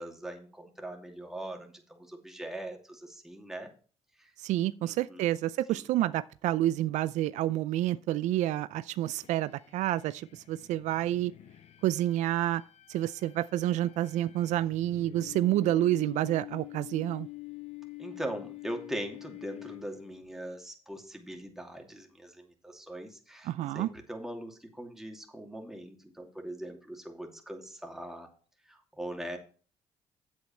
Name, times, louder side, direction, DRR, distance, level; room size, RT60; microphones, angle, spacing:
voice 1, 0.0-3.7 4.2-4.3 4.8-5.2 5.7-5.9 18.0-28.3 28.7-29.4, right 1 dB, 5° right, 2.6 m, -41 dB
voice 2, 4.4-11.3 11.8-12.6 12.9-17.3 23.5-23.9, right 14 dB, 75° right, 0.4 m, -29 dB
sound 1, 9.2-20.3, left 20 dB, 60° left, 0.8 m, -47 dB
8.3 x 8.2 x 4.3 m
cardioid pair, 80°, 12 cm